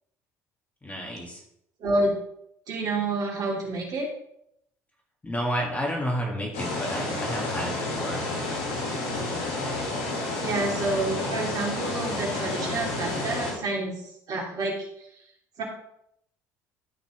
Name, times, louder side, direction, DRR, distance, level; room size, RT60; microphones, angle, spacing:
voice 1, 0.8-1.4 5.2-8.2, equal, 20° left, -1 dB, 3.3 m, -31 dB
voice 2, 1.8-2.1 2.7-4.1 10.4-13.9 14.3-15.1 15.6-15.7, right 2 dB, 55° right, -2 dB, 3.2 m, -28 dB
sound 1, 6.5-13.5, left 2 dB, 70° left, 3.0 m, -30 dB
13.0 x 6.0 x 3.9 m, 0.75 s
hypercardioid pair, 60°, 8 cm